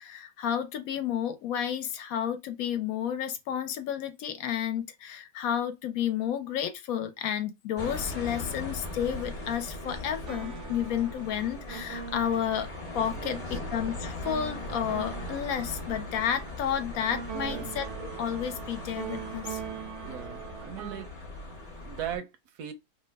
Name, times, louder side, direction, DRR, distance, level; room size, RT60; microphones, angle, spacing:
voice 1, 0.0-12.7 12.9-13.4 13.7-19.6, left 9 dB, 70° left, 1.0 m, -31 dB
sound 1, 7.8-22.2, left 2 dB, 35° left, 0.8 m, -39 dB
sound 2, 10.0-21.1, right 8 dB, 65° right, 0.8 m, -42 dB
voice 2, 13.2-13.6 17.4-17.8 20.0-21.1 21.8-22.7, right 9 dB, 90° right, 1.2 m, -39 dB
3.0 x 2.1 x 3.3 m
omnidirectional pair, 1.6 m